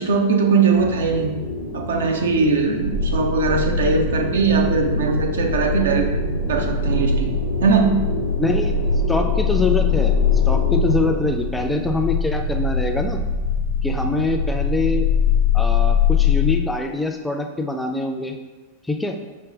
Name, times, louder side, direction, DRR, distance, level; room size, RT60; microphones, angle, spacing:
voice 1, 0.0-1.3 1.7-6.1 6.5-7.4 7.6-8.0, right 4 dB, 65° right, 2 dB, 0.5 m, -20 dB
sound 1, 0.7-11.2, left 2 dB, 85° left, 0.5 m, -30 dB
sound 2, 2.8-16.5, left 5 dB, 80° right, 1.5 m, -22 dB
voice 2, 8.4-10.1 10.5-13.2 13.8-15.0 15.5-18.4 18.9-19.2, left 3 dB, 5° left, 2 dB, 0.4 m, -24 dB
5.1 x 2.1 x 3.8 m, 1.2 s
figure-of-eight pair, 90°, 0 cm